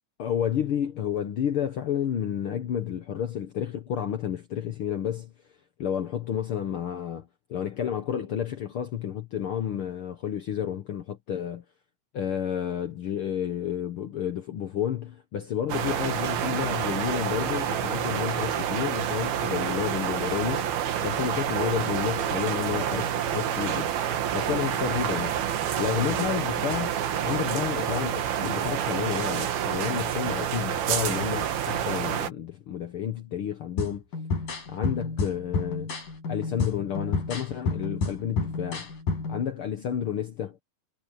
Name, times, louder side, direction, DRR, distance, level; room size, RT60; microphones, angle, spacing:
voice 1, 0.2-5.3 5.8-11.6 12.1-20.8 21.0-26.9 27.2-34.0 34.7-35.9 36.3-38.9 39.3-40.6, left 9 dB, 80° left, 1.2 m, -31 dB
sound 1, 15.7-32.3, right 10 dB, 85° right, 3.7 m, -28 dB
sound 2, 33.8-39.4, left 4 dB, 65° left, 7.8 m, -30 dB
omnidirectional pair, 4.2 m